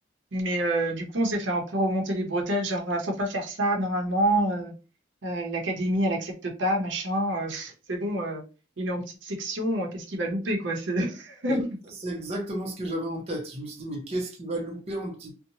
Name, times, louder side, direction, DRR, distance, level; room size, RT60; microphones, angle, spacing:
voice 1, 0.3-4.7 5.2-8.4 8.8-11.8, right 1 dB, 75° right, 0.7 m, -27 dB
voice 2, 12.0-15.3, right 1 dB, 35° right, 0.6 m, -32 dB
2.7 x 2.1 x 2.7 m
head